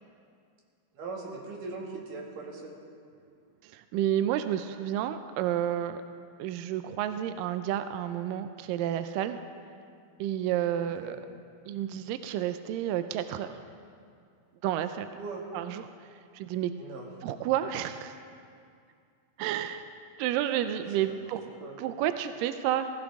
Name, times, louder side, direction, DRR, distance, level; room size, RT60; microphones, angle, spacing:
voice 1, 0.9-2.8 11.0-11.2 15.2-15.5 16.8-17.1 21.0-21.2 21.6-21.8, right 4 dB, 60° right, -2 dB, 3.4 m, -40 dB
voice 2, 3.6-6.0 6.4-9.4 10.2-11.2 11.7-13.5 14.6-15.1 15.5-15.8 16.3-16.7 17.2-18.2 19.4-19.8 20.2-21.4 21.8-22.9, right 11 dB, 85° right, 10 dB, 1.9 m, -30 dB
19.5 x 15.5 x 3.6 m, 2.3 s
omnidirectional pair, 4.5 m